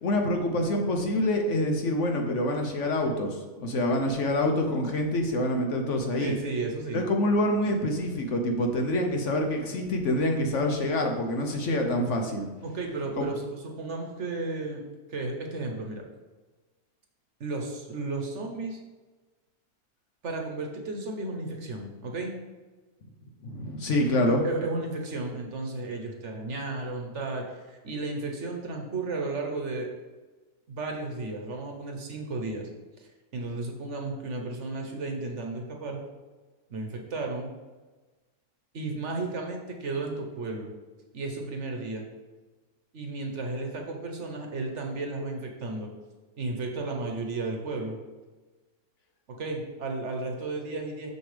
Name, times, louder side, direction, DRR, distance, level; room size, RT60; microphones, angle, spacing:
voice 1, 0.0-6.3 6.9-12.5 13.2-13.3 23.4-24.4, left 1 dB, 60° left, 3 dB, 1.0 m, -26 dB
voice 2, 6.2-7.0 12.6-14.8 15.1-16.0 17.4-18.8 20.2-22.3 24.2-29.9 30.7-32.7 33.0-36.0 36.7-37.5 38.7-40.7 41.1-42.1 42.9-45.9 46.4-48.0 49.3-51.1, right 3 dB, 55° right, 2 dB, 1.2 m, -33 dB
6.8 x 6.4 x 3.3 m, 1.2 s
omnidirectional pair, 1.6 m